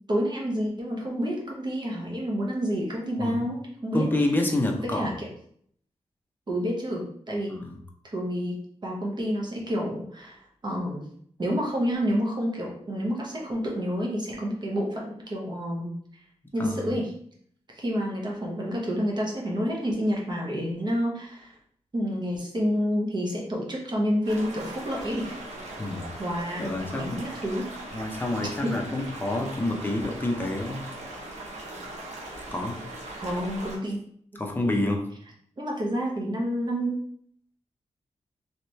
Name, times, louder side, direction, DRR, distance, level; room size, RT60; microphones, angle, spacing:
voice 1, 0.1-4.1 4.9-5.3 6.5-7.6 8.0-8.6 8.8-11.1 11.4-16.2 16.5-17.1 17.7-21.6 21.9-25.3 25.9-27.7 28.6-28.7 33.1-34.0 34.7-35.0 35.6-37.0, equal, 40° right, -2 dB, 0.9 m, -29 dB
voice 2, 3.9-5.1 7.5-7.7 16.6-16.9 25.8-26.1 26.6-27.3 27.9-30.9 32.5-32.8 34.4-35.0, left 2 dB, 15° left, 1 dB, 0.7 m, -28 dB
sound 1, 24.2-33.8, right 1 dB, 75° right, 0.9 m, -40 dB
3.2 x 3.0 x 3.1 m, 0.63 s
wide cardioid pair, 95°, 12 cm